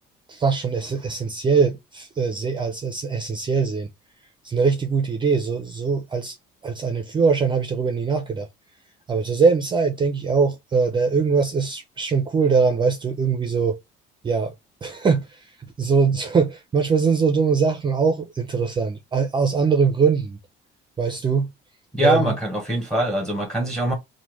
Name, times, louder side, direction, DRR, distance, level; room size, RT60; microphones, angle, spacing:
voice 1, 0.3-3.9 4.4-6.4 6.6-8.5 9.1-13.8 14.2-14.5 14.8-15.5 15.8-20.4 21.0-21.5 22.0-22.3, right 5 dB, 25° right, 0.4 m, -22 dB
voice 2, 21.9-23.9, right 1 dB, 5° left, 0.9 m, -23 dB
3.1 x 2.1 x 2.9 m
cardioid pair, 130°, 20 cm